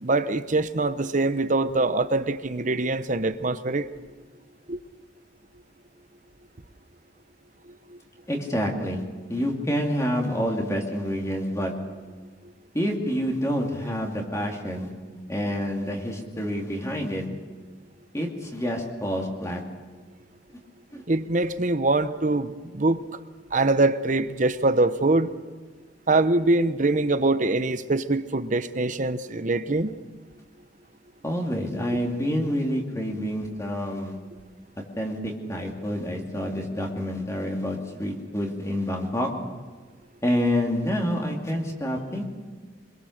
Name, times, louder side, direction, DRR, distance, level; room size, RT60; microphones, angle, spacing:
voice 1, 0.0-3.9 4.7-4.8 7.9-8.0 21.1-23.2 23.5-25.3 26.1-30.0, right 2 dB, 45° right, 0.9 m, -23 dB
voice 2, 8.3-9.0 9.3-11.7 12.7-14.9 15.3-17.3 18.1-19.6 20.9-21.0 31.2-34.1 35.0-39.3 40.2-42.2, equal, 15° left, 2.7 m, -28 dB
25.5 x 22.0 x 6.6 m
head